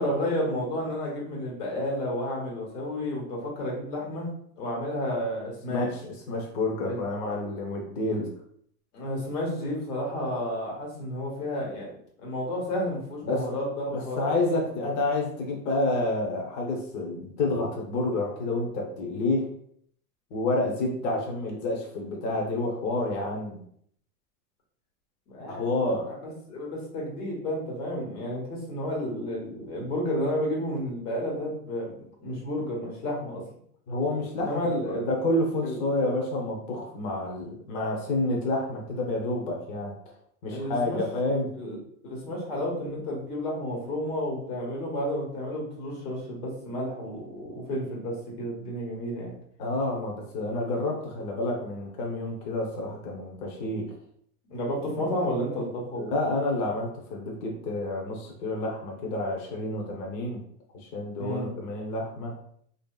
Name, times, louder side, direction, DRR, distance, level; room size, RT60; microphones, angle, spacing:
voice 1, 0.0-4.3 4.6-5.9 6.8-7.0 8.9-11.9 12.2-14.6 25.3-25.7 26.1-31.9 32.2-33.4 34.4-35.0 35.6-35.8 40.5-41.0 41.5-41.8 42.0-49.3 54.5-56.0 61.2-61.5, left 1 dB, 90° left, -3 dB, 1.5 m, -31 dB
voice 2, 5.7-6.0 6.3-8.3 13.2-13.5 13.9-19.5 20.3-23.6 25.4-26.1 33.9-34.6 34.9-39.9 40.4-41.5 49.6-53.9 56.0-60.4 60.7-62.3, left 2 dB, 40° left, -1 dB, 0.7 m, -29 dB
2.9 x 2.7 x 2.3 m, 0.64 s
supercardioid pair, 135°, 44 cm